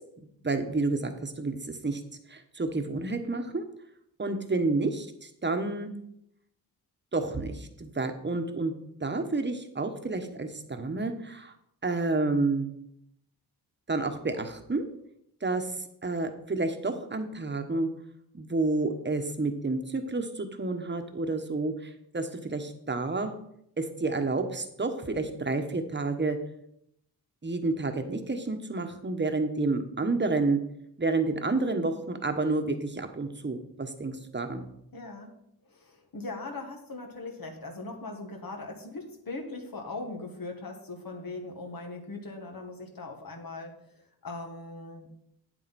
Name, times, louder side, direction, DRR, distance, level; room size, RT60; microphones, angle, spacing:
voice 1, 0.2-2.0 2.3-3.6 4.2-5.9 7.1-8.7 9.0-11.5 11.8-12.7 13.9-14.9 15.4-15.7 16.0-17.9 18.3-23.3 23.8-26.4 27.4-30.6 31.0-34.7, right 3 dB, 30° right, 7 dB, 1.2 m, -30 dB
voice 2, 34.9-35.3 35.7-43.7 44.2-45.1, left 2 dB, 60° left, 2 dB, 1.8 m, -40 dB
8.4 x 7.9 x 4.3 m, 0.76 s
cardioid pair, 65°, 39 cm